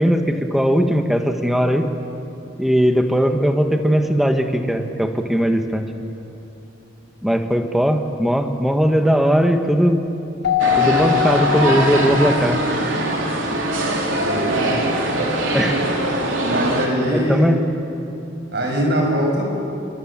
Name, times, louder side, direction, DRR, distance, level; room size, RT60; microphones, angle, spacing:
voice 1, 0.0-1.9 2.6-5.9 7.2-10.0 10.8-12.6 15.5-15.7 17.1-17.6, equal, ahead, 5 dB, 1.4 m, -18 dB
Keyboard (musical), 10.4-12.7, left 13 dB, 60° left, 1.6 m, -22 dB
sound 1, 10.6-16.9, right 1 dB, 85° right, 3.7 m, -22 dB
voice 2, 14.2-14.8 16.4-17.5 18.5-19.5, equal, 55° right, 0 dB, 6.9 m, -22 dB
27.0 x 24.0 x 7.4 m, 2.9 s
head